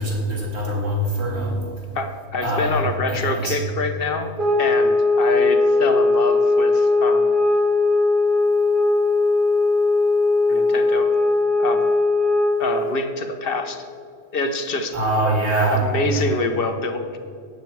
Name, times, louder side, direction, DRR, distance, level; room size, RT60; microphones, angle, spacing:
voice 1, 0.0-1.6 2.4-2.8 3.1-3.6 14.9-15.8, right 1 dB, 65° right, -2 dB, 3.0 m, -23 dB
voice 2, 1.9-4.3 4.6-7.3 10.5-11.1 11.6-11.9 12.6-13.8 14.3-15.0 15.7-17.2, left 3 dB, 45° left, 7 dB, 0.9 m, -25 dB
sound 1, 4.4-12.7, left 3 dB, 35° right, 1.2 m, -18 dB
12.5 x 9.4 x 4.7 m, 2.3 s
omnidirectional pair, 1.6 m